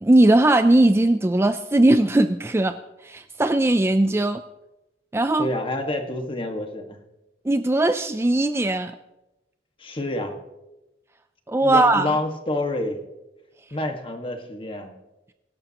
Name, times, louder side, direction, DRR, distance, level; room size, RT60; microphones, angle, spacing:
voice 1, 0.0-2.7 3.0-4.4 5.1-5.5 7.5-8.9 11.5-12.1, right 1 dB, 15° right, 9 dB, 0.4 m, -19 dB
voice 2, 5.4-7.0 9.8-10.3 11.6-13.0 13.7-14.9, left 1 dB, 30° left, 4 dB, 1.6 m, -28 dB
23.0 x 11.5 x 2.9 m, 0.97 s
head